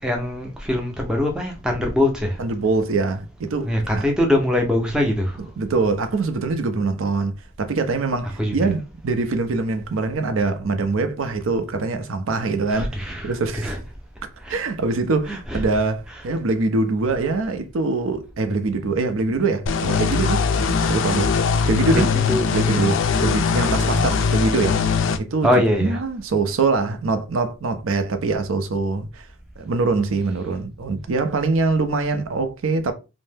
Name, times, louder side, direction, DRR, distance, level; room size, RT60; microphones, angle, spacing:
voice 1, 0.0-2.4 3.6-5.5 8.4-8.7 12.7-13.8 14.4-14.6 15.3-15.6 21.9-22.8 23.2-23.4 23.8-24.0 25.4-26.0, left 1 dB, 5° right, 0.4 m, -23 dB
voice 2, 2.4-4.1 5.6-13.0 13.2-13.8 14.5-22.1 22.5-25.5 25.8-29.3 29.6-32.9, right 3 dB, 80° right, 0.5 m, -23 dB
sound 1, 19.7-25.2, left 5 dB, 65° left, 0.3 m, -21 dB
2.7 x 2.0 x 3.3 m
head